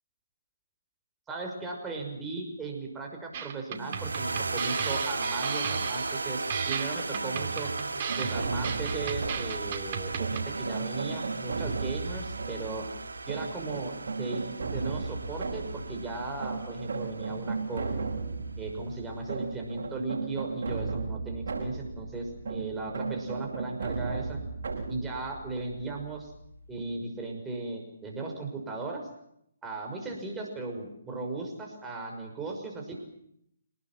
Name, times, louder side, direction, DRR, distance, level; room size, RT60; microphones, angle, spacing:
voice 1, 1.3-7.7 8.1-12.9 13.3-18.1 18.6-24.4 24.9-26.3 26.7-29.1 29.6-33.0, right 3 dB, 10° right, 1 dB, 5.9 m, -37 dB
sound 1, 3.3-10.5, right 7 dB, 40° right, 2.5 m, -35 dB
sound 2, 3.8-18.2, right 3 dB, 80° right, 1.9 m, -37 dB
sound 3, 8.1-26.8, right 4 dB, 60° right, 7.6 m, -36 dB
26.5 x 20.0 x 7.8 m, 0.74 s
figure-of-eight pair, 145°, 0 cm